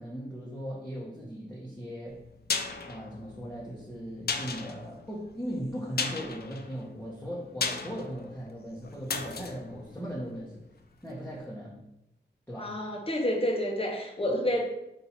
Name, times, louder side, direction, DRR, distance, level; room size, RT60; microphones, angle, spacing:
voice 1, 0.0-2.2 2.9-10.6 11.0-11.8 12.5-12.7, equal, 10° left, -6 dB, 1.0 m, -38 dB
sound 1, 2.1-10.9 11.2-11.3, left 5 dB, 55° left, 0.5 m, -36 dB
voice 2, 12.6-14.6, equal, 30° left, 1 dB, 1.0 m, -29 dB
4.1 x 2.7 x 4.3 m, 0.87 s
cardioid pair, 60°, 20 cm